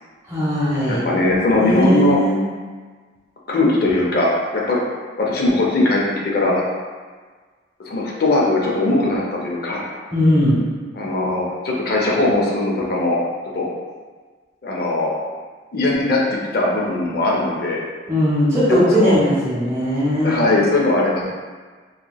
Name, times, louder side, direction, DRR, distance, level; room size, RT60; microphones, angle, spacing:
voice 1, 0.3-1.0 1.6-2.4 10.1-10.6 18.1-20.4, equal, 15° right, -11 dB, 0.8 m, -18 dB
voice 2, 0.9-2.2 3.5-4.8 5.2-6.6 7.9-9.8 10.9-13.2 13.5-13.7 14.6-15.1 15.7-17.8 18.9-19.2 20.2-21.3, left 2 dB, 50° left, -3 dB, 0.5 m, -19 dB
2.8 x 2.8 x 2.3 m, 1.5 s
head